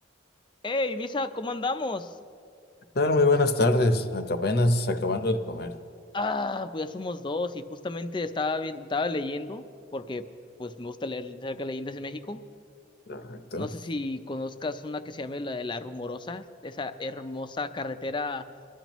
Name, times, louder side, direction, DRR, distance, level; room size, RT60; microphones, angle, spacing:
voice 1, 0.6-2.1 6.1-9.6 9.9-10.2 10.6-12.4 13.5-18.4, left 2 dB, 25° left, 9 dB, 0.5 m, -32 dB
voice 2, 2.9-5.7 13.1-13.7, left 2 dB, 55° left, 8 dB, 0.8 m, -24 dB
23.5 x 12.0 x 3.0 m, 2.4 s
head